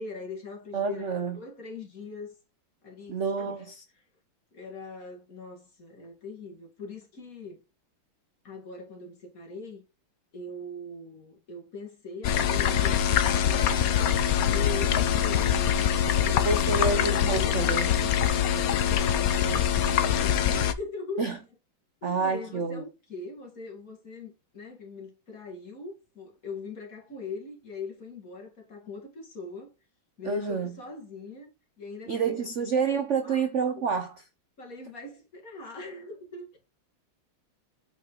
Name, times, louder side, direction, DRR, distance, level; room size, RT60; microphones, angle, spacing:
voice 1, 0.0-2.3 2.8-3.6 4.5-7.6 8.4-9.8 10.3-14.0 14.5-17.2 18.5-21.2 22.0-29.7 30.2-32.5 32.7-32.9 33.2-33.5 34.6-36.6, left 3 dB, 40° left, 2.6 m, -41 dB
voice 2, 0.7-1.4 3.1-3.8 16.4-17.9 21.2-21.4 22.0-22.8 30.2-30.8 32.1-34.2, right 5 dB, 55° right, 0.8 m, -28 dB
sound 1, 12.2-20.7, left 9 dB, 65° left, 0.9 m, -24 dB
8.3 x 5.4 x 3.9 m
omnidirectional pair, 2.3 m